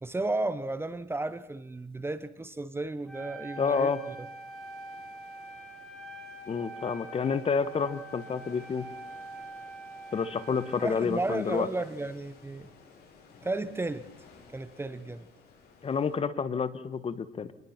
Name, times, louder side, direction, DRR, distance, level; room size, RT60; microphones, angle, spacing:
voice 1, 0.0-4.3 10.8-12.7 13.4-14.1 14.5-15.3, right 2 dB, 15° right, 1.0 m, -33 dB
Wind instrument woodwind instrument, 3.0-11.3, right 2 dB, 5° left, 4.7 m, -45 dB
sound 1, 3.4-16.2, left 4 dB, 70° left, 7.6 m, -56 dB
voice 2, 3.6-4.0 6.5-8.9 10.1-11.7 15.8-17.5, left 5 dB, 35° left, 1.4 m, -29 dB
26.0 x 20.5 x 6.0 m
cardioid pair, 110°, 17 cm